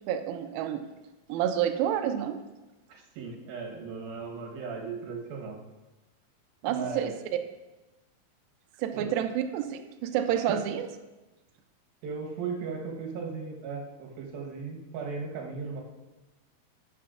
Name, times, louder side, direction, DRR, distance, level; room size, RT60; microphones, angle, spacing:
voice 1, 0.1-0.8 1.3-2.4 6.6-7.1 8.8-10.9, right 9 dB, 85° right, 7 dB, 2.1 m, -29 dB
voice 2, 2.9-5.6 6.6-7.1 8.9-9.1 10.3-10.6 12.0-15.8, right 5 dB, 70° right, 0 dB, 2.9 m, -37 dB
11.5 x 8.4 x 2.5 m, 1.1 s
omnidirectional pair, 4.7 m